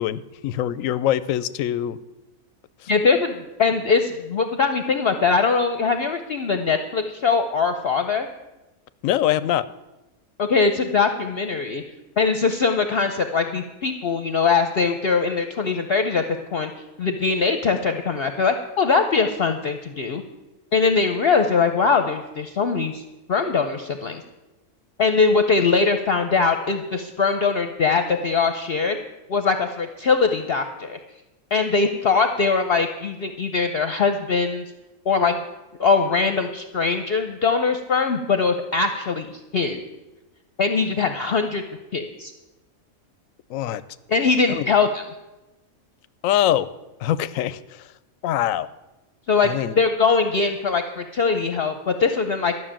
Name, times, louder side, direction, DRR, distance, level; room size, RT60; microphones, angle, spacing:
voice 1, 0.0-2.0 2.8-2.9 9.0-9.6 43.5-43.8 44.5-44.7 46.2-46.7 47.0-47.9 48.2-48.7 49.4-49.7, left 12 dB, 75° left, 17 dB, 1.0 m, -23 dB
voice 2, 2.9-8.3 10.4-11.8 12.2-16.2 16.5-16.7 17.0-20.2 20.7-23.0 23.3-24.2 25.0-29.0 29.3-31.0 31.5-34.6 35.1-35.4 35.8-39.8 40.6-41.6 41.9-42.3 44.1-45.0 49.3-52.5, left 4 dB, 50° left, 7 dB, 0.8 m, -21 dB
12.5 x 6.3 x 8.8 m, 1.0 s
omnidirectional pair, 1.5 m